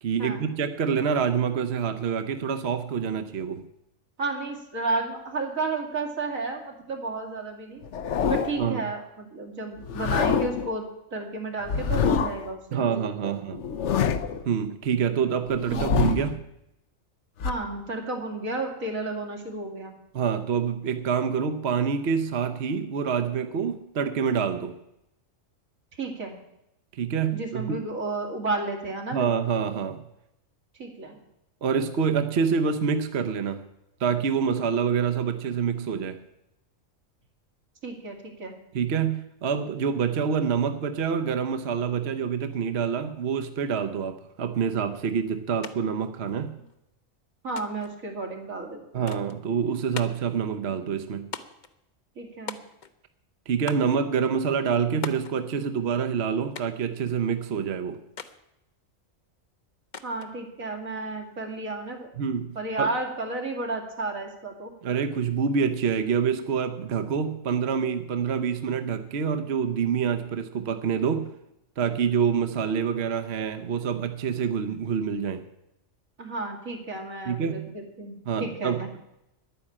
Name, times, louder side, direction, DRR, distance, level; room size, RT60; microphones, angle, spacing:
voice 1, 0.0-3.7 8.6-8.8 12.7-13.6 14.5-16.4 20.1-24.8 27.0-27.8 29.1-30.0 31.6-33.7 34.0-36.2 38.7-46.5 48.9-51.3 53.5-58.0 62.2-62.9 64.8-71.3 71.8-75.4 77.3-77.7 78.3-79.0, right 6 dB, 55° right, 8 dB, 1.0 m, -26 dB
voice 2, 4.2-7.8 8.3-13.4 15.7-15.9 17.4-19.9 26.0-26.4 27.3-29.3 30.7-31.2 37.8-38.5 47.4-49.1 50.7-50.8 52.2-52.6 60.0-62.1 62.5-64.7 76.2-78.9, right 3 dB, 85° right, 2 dB, 2.9 m, -32 dB
sound 1, 7.8-8.7 9.8-10.7 11.6-12.5 13.5-14.5 15.5-16.4 17.4-17.5, left 6 dB, 65° left, 1.0 m, -26 dB
sound 2, 45.6-45.8 46.0-46.8 47.6-48.0 49.1-49.4 49.9-50.3 51.3-51.7 52.5-53.0 53.7-54.0 55.0-55.4 56.5-56.9 58.2-58.4 59.9-60.3, left 5 dB, 40° left, 0.9 m, -39 dB
11.0 x 9.8 x 8.6 m, 0.85 s
omnidirectional pair, 1.4 m